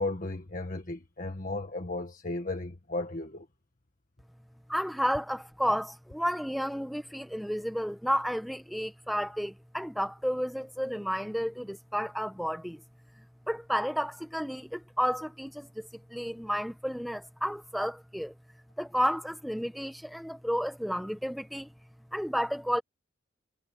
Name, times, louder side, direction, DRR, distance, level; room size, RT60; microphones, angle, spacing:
voice 1, 0.0-3.5, left 2 dB, 40° left, 1.7 m, -35 dB
voice 2, 4.7-12.8 13.5-18.3 18.8-21.7 22.1-22.8, equal, ahead, 1.4 m, -32 dB
head